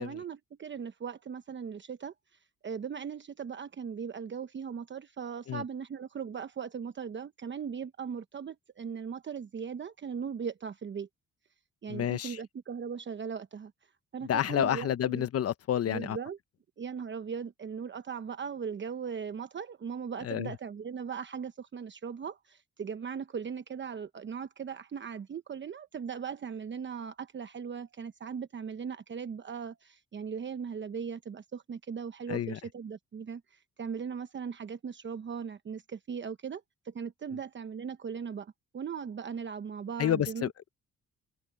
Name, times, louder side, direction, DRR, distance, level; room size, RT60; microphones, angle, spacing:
voice 1, 0.0-2.1 2.6-11.1 11.8-13.7 14.1-15.3 15.9-16.4 16.8-40.7, right 6 dB, 40° right, 1.0 m, -39 dB
voice 2, 11.9-12.4 14.2-16.2 20.2-20.5 32.3-32.6 40.0-40.5, left 10 dB, 55° left, 0.9 m, -29 dB
cardioid pair, 90°, 30 cm